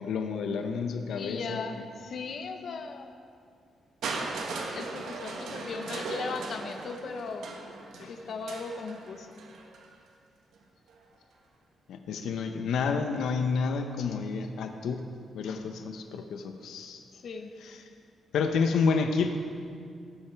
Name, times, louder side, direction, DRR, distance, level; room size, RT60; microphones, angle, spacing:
voice 1, 0.0-1.8 8.0-8.1 11.9-15.0 15.3-17.0 17.6-17.8 18.3-19.4, left 5 dB, 85° left, 6 dB, 0.8 m, -30 dB
voice 2, 1.1-3.1 4.7-7.5 8.1-9.3 17.1-17.5, left 4 dB, 50° left, 5 dB, 0.9 m, -37 dB
Crushing, 4.0-9.9 10.9-11.0, right 3 dB, 85° right, 1.6 m, -38 dB
18.0 x 8.9 x 4.6 m, 2.3 s
wide cardioid pair, 165°, 0 cm